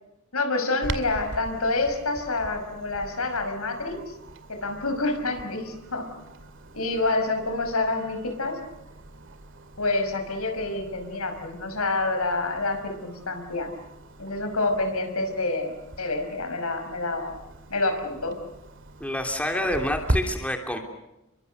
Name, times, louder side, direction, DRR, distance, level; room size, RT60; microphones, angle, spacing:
voice 1, 0.3-4.1 4.5-6.1 6.7-8.6 9.8-13.7 14.2-17.4 17.7-18.4 19.5-19.6, left 2 dB, 90° left, 6 dB, 5.6 m, -27 dB
Clock, 0.8-20.2, right 1 dB, 60° right, 2.3 m, -39 dB
voice 2, 19.0-20.8, left 1 dB, 5° left, 3 dB, 3.2 m, -27 dB
30.0 x 23.5 x 6.8 m, 0.90 s
head